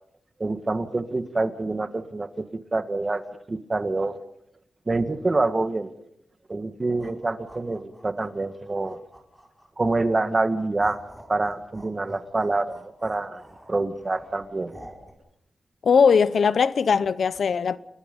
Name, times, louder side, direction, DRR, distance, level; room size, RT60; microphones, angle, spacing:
voice 1, 0.4-2.5 2.7-4.2 4.9-5.9 6.5-9.0 9.8-11.0 11.3-13.4 13.7-14.7, right 2 dB, 30° right, 1.8 m, -26 dB
sound 1, 6.8-9.8 10.3-15.1, right 1 dB, 5° right, 5.1 m, -48 dB
voice 2, 15.8-17.8, left 6 dB, 70° left, 0.8 m, -19 dB
30.0 x 21.0 x 5.4 m
wide cardioid pair, 110°, 0 cm